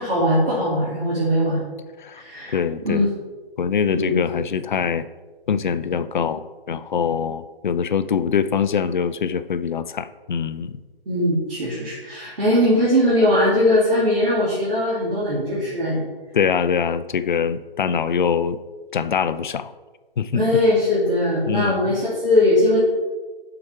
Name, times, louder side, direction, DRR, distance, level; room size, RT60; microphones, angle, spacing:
voice 1, 0.0-1.6 2.1-2.5 2.8-3.1 3.9-4.1 11.1-16.0 20.3-22.8, left 1 dB, 65° right, -8 dB, 2.7 m, -20 dB
voice 2, 2.5-3.1 3.6-5.1 5.5-10.8 16.3-18.6 18.9-19.7 20.2-20.6 21.5-21.9, left 7 dB, 55° left, 14 dB, 0.4 m, -23 dB
7.3 x 6.0 x 4.5 m, 1.3 s
figure-of-eight pair, 140°, 30 cm